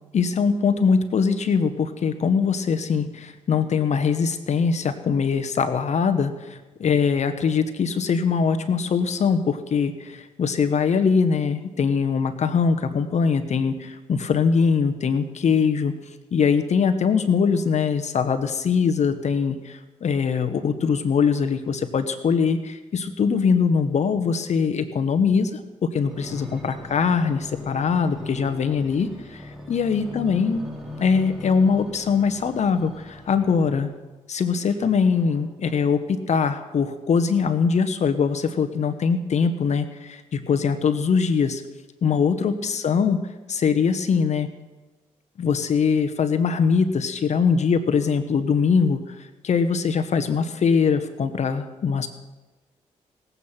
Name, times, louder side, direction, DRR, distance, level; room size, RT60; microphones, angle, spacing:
voice 1, 0.1-15.9 16.3-30.7 31.0-33.9 34.3-41.6 42.0-43.2 43.5-44.5 45.4-52.1, left 5 dB, 60° left, 9 dB, 1.1 m, -22 dB
sound 1, 26.0-33.9 34.5-35.8 36.4-36.5, left 2 dB, ahead, 4.4 m, -40 dB
19.0 x 8.2 x 5.8 m, 1.2 s
cardioid pair, 70°, 13 cm